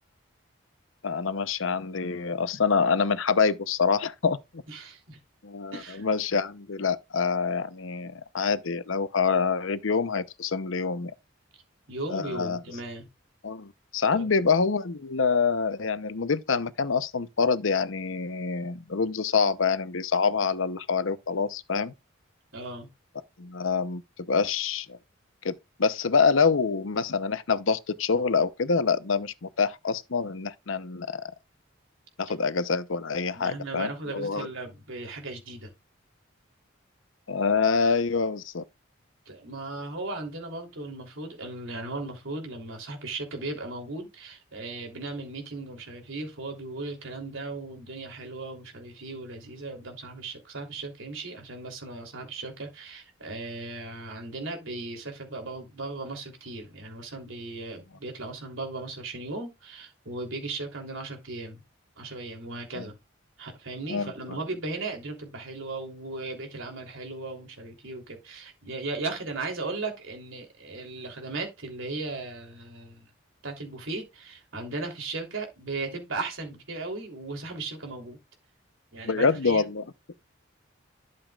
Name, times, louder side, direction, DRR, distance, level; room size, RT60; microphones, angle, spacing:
voice 1, 1.0-4.6 5.4-11.1 12.1-12.6 13.4-21.9 23.4-24.0 24.3-25.0 25.4-31.2 32.2-34.5 37.3-38.6 62.8-62.9 63.9-64.4 79.0-79.8, left 5 dB, 80° left, 0.8 m, -26 dB
voice 2, 4.7-5.2 5.7-6.0 11.9-13.1 14.1-14.3 22.5-22.9 33.3-35.7 39.3-61.6 62.0-62.9 63.4-73.1 73.4-78.2 78.9-79.7, right 3 dB, 80° right, 3.3 m, -37 dB
12.0 x 7.0 x 2.4 m
head